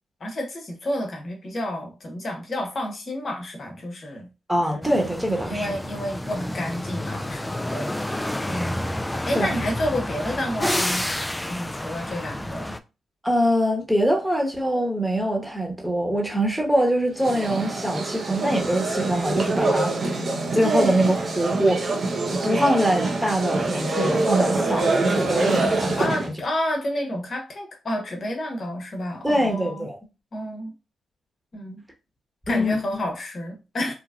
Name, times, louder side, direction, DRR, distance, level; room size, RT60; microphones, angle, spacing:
voice 1, 0.2-4.3 4.6-4.9 5.4-8.8 9.2-11.1 11.5-12.8 26.0-29.9 30.3-30.7 31.5-31.8 32.5-33.9, left 1 dB, 55° left, 1.0 m, -30 dB
voice 2, 4.5-5.7 9.3-9.6 13.2-20.2 20.5-21.9 22.3-26.1 29.2-30.0 32.5-32.8, equal, 5° right, 1.0 m, -23 dB
sound 1, 4.8-12.8, left 1 dB, 15° left, 0.3 m, -29 dB
sound 2, 17.1-26.3, right 2 dB, 60° right, 0.6 m, -25 dB
3.1 x 2.2 x 2.4 m
supercardioid pair, 40°, 0 cm